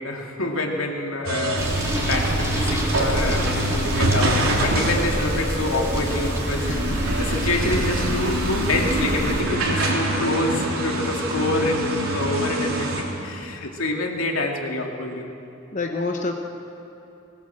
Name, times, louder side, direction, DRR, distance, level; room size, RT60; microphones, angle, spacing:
voice 1, 0.0-6.7 7.2-15.3, left 2 dB, 80° left, 1 dB, 2.5 m, -27 dB
sound 1, 1.2-13.0, right 1 dB, 90° right, 3.4 m, -25 dB
sound 2, 1.6-9.4, equal, 15° right, 4.0 m, -27 dB
voice 2, 6.7-7.2 13.5-13.7 15.7-16.3, left 3 dB, 35° left, 3 dB, 1.0 m, -29 dB
19.5 x 19.5 x 7.8 m, 3.0 s
head